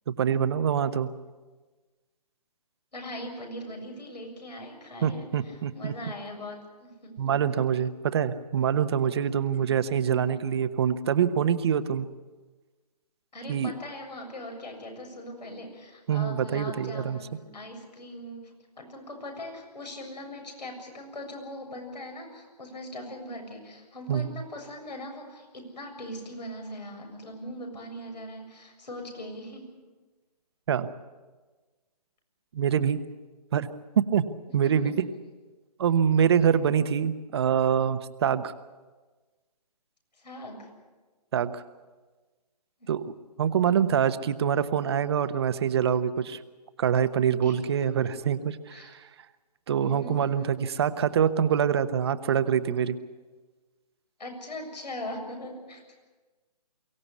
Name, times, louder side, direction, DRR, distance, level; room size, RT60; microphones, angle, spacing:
voice 1, 0.1-1.1 5.0-5.9 7.2-12.1 13.5-13.7 16.1-17.2 24.1-24.3 30.7-30.9 32.5-33.0 33.5-33.7 34.0-34.2 34.5-35.1 35.8-38.5 41.3-41.6 42.9-43.0 43.4-46.4 46.8-49.0 49.7-53.0, right 8 dB, 40° right, 12 dB, 1.0 m, -25 dB
voice 2, 2.9-7.4 9.5-9.7 13.3-29.6 34.6-34.7 40.2-40.7 47.4-47.6 48.7-48.9 49.8-50.3 54.2-55.8, left 1 dB, 80° left, 2 dB, 7.2 m, -40 dB
23.5 x 16.5 x 8.4 m, 1.3 s
hypercardioid pair, 155°, 21 cm